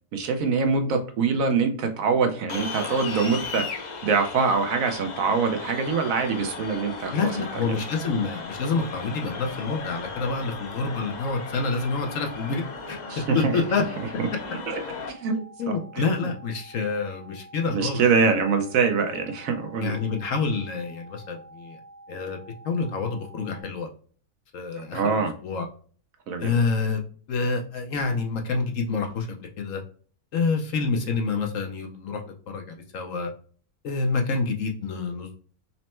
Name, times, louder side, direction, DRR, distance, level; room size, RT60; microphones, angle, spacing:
voice 1, 0.1-7.3 7.7-7.8 13.1-13.5 14.2-14.3 14.7-14.8 15.1-15.3 15.7-16.0 17.7-20.0 24.9-25.3 26.3-26.5, right 5 dB, 70° right, 6 dB, 0.9 m, -24 dB
sound 1, 2.5-15.1, left 4 dB, 90° left, 0.4 m, -36 dB
sound 2, 4.5-23.6, right 2 dB, 35° left, 1.0 m, -48 dB
voice 2, 7.1-13.0 13.3-13.8 15.3-18.3 19.8-21.8 22.1-22.4 22.6-23.9 24.5-25.7 26.4-27.0 27.3-29.8 30.3-33.3 33.8-35.4, left 4 dB, 65° left, 3 dB, 0.9 m, -28 dB
4.2 x 2.1 x 4.2 m, 0.42 s
omnidirectional pair, 1.7 m